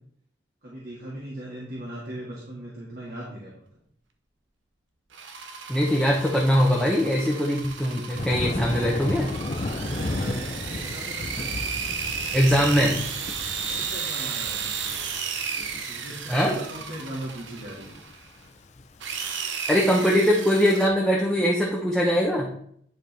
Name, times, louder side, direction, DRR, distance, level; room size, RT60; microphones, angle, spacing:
voice 1, 0.6-3.5 8.6-8.9 9.4-11.5 13.7-14.7 15.9-18.0, right 1 dB, 55° right, -5 dB, 1.9 m, -39 dB
sound 1, 5.1-18.3 19.0-20.9, right 6 dB, 80° right, 0.9 m, -34 dB
voice 2, 5.7-9.3 12.3-13.0 16.3-16.6 19.7-22.5, equal, ahead, -4 dB, 0.9 m, -21 dB
Thunder, 8.1-19.3, left 2 dB, 40° left, 0.5 m, -34 dB
10.5 x 4.5 x 3.4 m, 0.66 s
head